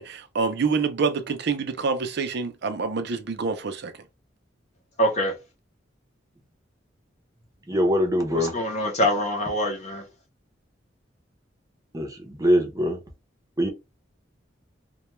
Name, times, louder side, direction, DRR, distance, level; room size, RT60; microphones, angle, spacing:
voice 1, 0.0-3.9, right 4 dB, 60° right, 0.5 m, -27 dB
voice 2, 5.0-5.3 8.3-10.0, equal, 40° left, 0.6 m, -24 dB
voice 3, 7.7-8.6 11.9-13.0 13.6-13.7, equal, 20° right, 0.6 m, -23 dB
2.2 x 2.2 x 2.9 m
head